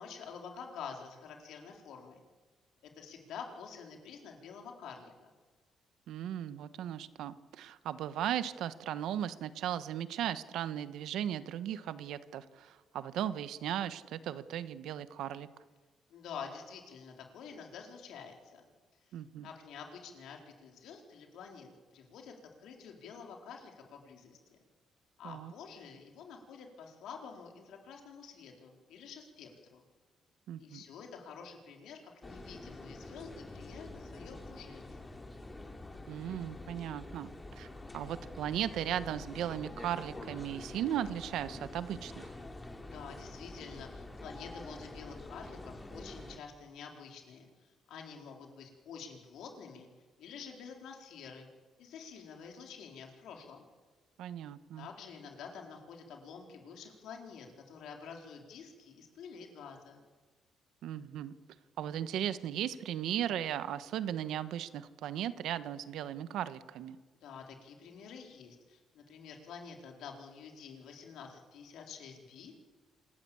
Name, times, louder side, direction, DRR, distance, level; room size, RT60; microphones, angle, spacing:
voice 1, 0.0-2.2 2.8-5.3 16.1-18.6 19.1-19.2 19.4-24.6 25.2-29.8 30.6-35.0 42.8-49.9 50.2-51.5 51.8-53.6 54.8-60.0 67.2-72.6, left 6 dB, 80° left, 2 dB, 4.1 m, -48 dB
voice 2, 6.1-15.5 19.1-19.5 25.2-25.5 30.5-30.8 36.1-37.3 37.6-37.7 37.9-42.3 54.2-54.9 60.8-61.3 61.8-67.0, right 10 dB, 85° right, 13 dB, 1.2 m, -37 dB
sound 1, 32.2-46.4, left 2 dB, 20° left, 2.6 m, -47 dB
27.0 x 14.0 x 8.7 m, 1.4 s
cardioid pair, 90°, 0 cm